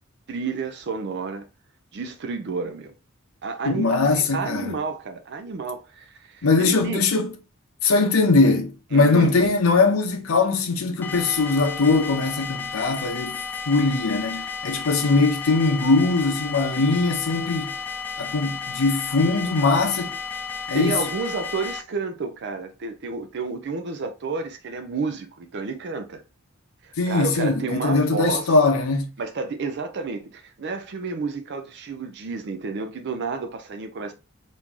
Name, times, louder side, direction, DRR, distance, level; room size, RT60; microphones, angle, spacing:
voice 1, 0.3-1.5 1.9-2.9 3.4-7.0 8.9-9.4 20.7-26.2 26.8-28.6 29.2-34.1, right 4 dB, 55° right, 0.5 m, -31 dB
voice 2, 3.7-4.7 6.4-7.3 7.8-17.7 18.2-20.1 20.7-21.0 27.0-29.1, left 3 dB, 80° left, 0.6 m, -21 dB
sound 1, 11.0-21.8, left 5 dB, 10° left, 0.3 m, -33 dB
3.0 x 2.6 x 3.5 m
head